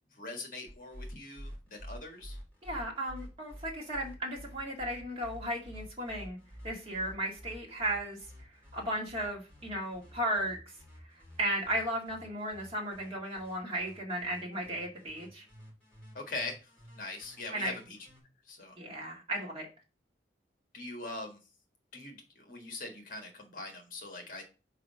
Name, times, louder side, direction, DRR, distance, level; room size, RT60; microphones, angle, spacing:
voice 1, 0.1-2.4 16.1-16.7 16.9-18.0 18.5-18.8 20.7-21.4 21.9-24.4, left 2 dB, 50° left, 4 dB, 1.5 m, -42 dB
sound 1, 0.7-18.2, equal, 10° left, 3.4 m, -50 dB
voice 2, 2.6-6.4 6.6-8.2 8.7-10.6 11.4-15.4 17.5-17.7 18.8-19.7, right 1 dB, 30° right, -1 dB, 2.0 m, -35 dB
4.9 x 4.7 x 5.6 m, 0.32 s
head